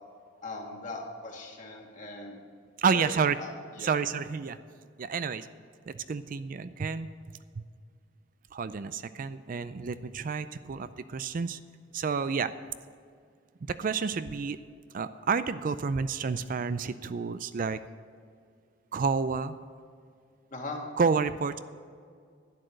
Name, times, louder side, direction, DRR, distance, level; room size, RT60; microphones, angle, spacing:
voice 1, 0.4-2.4 2.9-3.1 3.4-3.9 20.5-20.8, left 2 dB, 40° left, 0 dB, 2.0 m, -40 dB
voice 2, 2.8-3.4 3.8-4.6 5.0-5.5 5.9-7.1 8.5-11.6 11.9-12.5 13.6-14.6 14.9-17.8 18.9-19.6 21.0-21.6, right 5 dB, 45° right, 13 dB, 0.4 m, -30 dB
11.5 x 10.0 x 6.4 m, 2.1 s
head